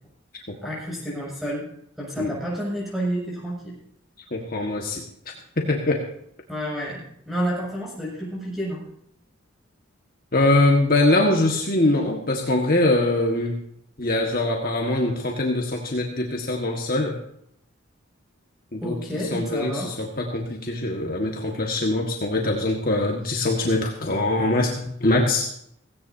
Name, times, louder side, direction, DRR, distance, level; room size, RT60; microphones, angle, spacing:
voice 1, 0.6-1.7 2.0-3.7 6.5-8.8 18.8-19.9, equal, ahead, -5 dB, 7.0 m, -30 dB
voice 2, 4.3-5.0 5.6-6.0 10.3-13.6 14.0-17.2 18.7-19.0 19.3-25.5, left 2 dB, 45° left, 0 dB, 1.7 m, -23 dB
17.0 x 17.0 x 2.8 m, 0.72 s
head